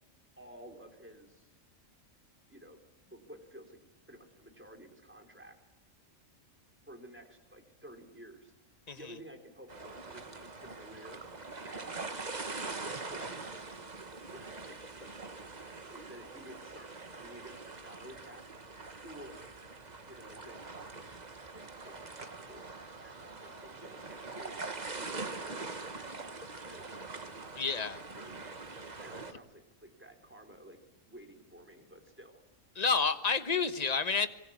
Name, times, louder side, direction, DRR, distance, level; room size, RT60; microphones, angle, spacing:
voice 1, 0.4-1.5 2.5-2.8 3.0-3.8 4.1-5.6 6.9-8.5 8.9-11.2 11.6-12.5 13.1-13.5 14.3-15.4 15.6-18.4 19.0-19.5 20.0-20.6 20.9-21.1 21.5-22.7 23.0-25.7 26.0-27.6 28.1-28.4 29.0-30.8 31.0-32.4, right 1 dB, 10° right, 3 dB, 3.7 m, -53 dB
sound 1, 9.7-29.3, right 3 dB, 35° right, 1.4 m, -43 dB
voice 2, 27.6-28.0 32.8-34.3, left 5 dB, 30° left, 11 dB, 1.3 m, -29 dB
24.5 x 21.5 x 8.6 m, 0.87 s
omnidirectional pair, 1.4 m